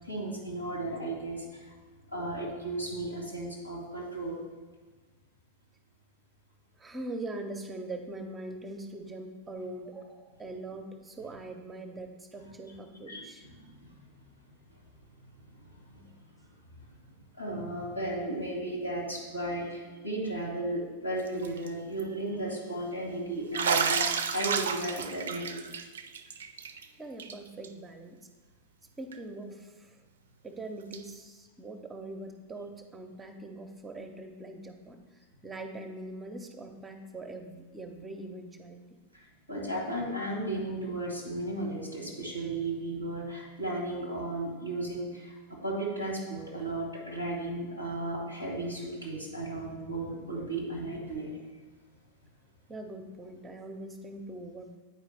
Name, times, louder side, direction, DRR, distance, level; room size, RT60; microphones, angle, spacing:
voice 1, 0.1-1.4 2.1-4.4 13.1-13.5 17.4-25.6 39.5-51.3, right 1 dB, 85° left, -2 dB, 1.7 m, -35 dB
voice 2, 6.8-13.5 27.0-28.2 29.0-30.0 30.4-35.0 35.4-38.8 52.7-54.8, right 2 dB, 15° right, 5 dB, 0.7 m, -42 dB
Bathtub (filling or washing), 21.3-21.7 22.0-22.1 23.5-26.9 27.2-27.3 27.6-27.7 29.1-29.2 30.9-31.0, right 6 dB, 65° right, 0.4 m, -31 dB
8.9 x 4.8 x 3.4 m, 1.4 s
figure-of-eight pair, 90°, 0 cm